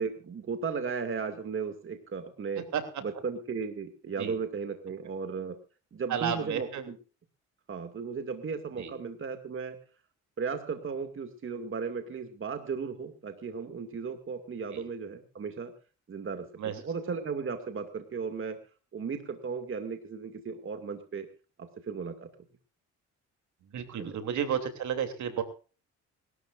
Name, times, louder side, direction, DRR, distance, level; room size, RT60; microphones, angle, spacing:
voice 1, 0.0-2.6 3.0-5.6 5.9-7.0 7.7-9.8 10.4-15.7 16.1-18.6 18.9-21.3 21.6-22.3 24.0-24.2, right 5 dB, 45° right, 7 dB, 2.3 m, -35 dB
voice 2, 6.1-6.8 8.8-8.9 14.7-14.8 16.6-16.7 23.7-25.4, right 8 dB, 70° right, 8 dB, 3.1 m, -32 dB
25.5 x 13.0 x 2.6 m, 0.35 s
cardioid pair, 90°, 30 cm